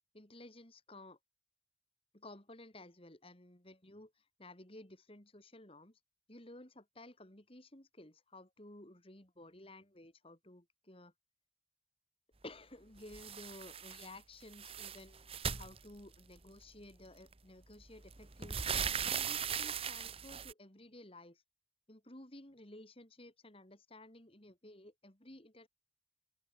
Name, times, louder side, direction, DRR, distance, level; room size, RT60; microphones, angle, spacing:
voice 1, 0.1-1.2 2.1-6.0 6.3-11.1 12.4-18.7 19.0-21.4 21.9-25.7, left 1 dB, 30° left, 3.0 m, -55 dB
sound 1, 13.1-14.1 14.4-16.4 17.3-17.4 17.8-20.5, right 7 dB, 30° right, 1.2 m, -39 dB
head